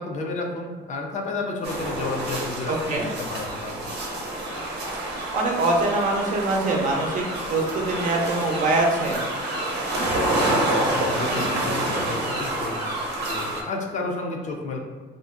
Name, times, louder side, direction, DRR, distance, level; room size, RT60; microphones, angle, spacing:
voice 1, 0.0-3.9 10.4-12.9 13.2-14.8, left 3 dB, 45° left, 2 dB, 0.5 m, -32 dB
sound 1, 1.6-13.6, right 1 dB, 85° right, 0.7 m, -28 dB
voice 2, 2.7-3.1 5.3-9.3, right 2 dB, 50° right, 0 dB, 0.6 m, -23 dB
2.5 x 2.0 x 3.6 m, 1.5 s
cardioid pair, 110°, 17 cm